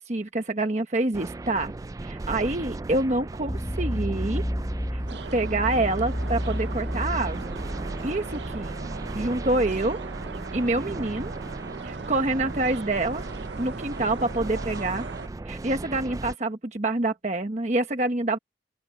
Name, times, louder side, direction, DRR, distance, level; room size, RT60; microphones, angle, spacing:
voice 1, 0.0-1.7 2.0-4.4 4.9-5.0 5.3-7.6 8.0-8.8 9.1-10.0 10.5-11.3 11.8-13.3 13.6-15.1 15.4-18.4, right 2 dB, 40° right, 1.0 m, -27 dB
sound 1, 1.1-16.4, right 2 dB, 20° right, 0.3 m, -36 dB
sound 2, 3.5-8.6, equal, 15° left, 1.9 m, -31 dB
sound 3, 5.1-15.3, right 4 dB, 75° right, 0.6 m, -39 dB
open air
head